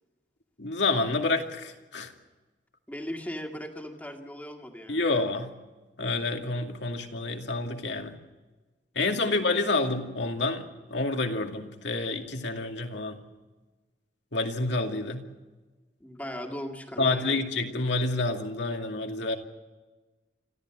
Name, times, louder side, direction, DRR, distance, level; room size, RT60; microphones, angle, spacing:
voice 1, 0.6-2.1 4.9-5.5 6.0-8.2 9.0-13.2 14.3-15.2 17.0-19.4, left 2 dB, 80° left, 4 dB, 2.3 m, -28 dB
voice 2, 2.9-5.1 9.1-9.4 16.0-17.4, equal, 10° left, 3 dB, 2.0 m, -38 dB
26.0 x 15.0 x 7.7 m, 1.2 s
head